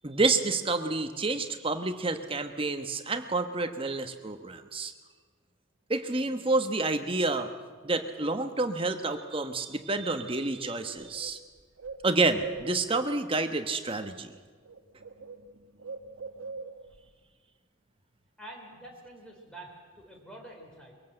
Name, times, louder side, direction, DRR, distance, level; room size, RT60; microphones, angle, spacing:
voice 1, 0.0-4.9 5.9-7.5 7.8-11.4 12.0-14.3, right 3 dB, 25° right, 7 dB, 1.1 m, -29 dB
Bird, 10.2-10.3 10.6-13.1 14.1-14.4 14.6-17.1, right 4 dB, 85° right, 1.0 m, -43 dB
voice 2, 18.4-20.9, right 1 dB, 5° left, 0 dB, 3.8 m, -47 dB
23.0 x 17.5 x 7.8 m, 1.5 s
head